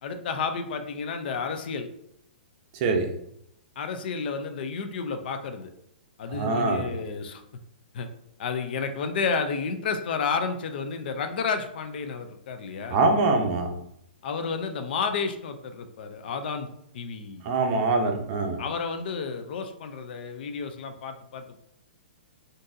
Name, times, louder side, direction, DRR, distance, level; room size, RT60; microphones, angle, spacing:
voice 1, 0.0-1.9 3.8-5.7 6.2-7.4 7.9-8.1 8.4-13.0 14.2-16.7 16.9-17.5 18.6-21.6, left 5 dB, 60° left, 7 dB, 0.4 m, -31 dB
voice 2, 6.3-6.9 12.9-13.7 17.4-18.6, right 3 dB, 40° right, 3 dB, 0.6 m, -23 dB
3.7 x 2.6 x 2.6 m, 0.74 s
hypercardioid pair, 140°, 6 cm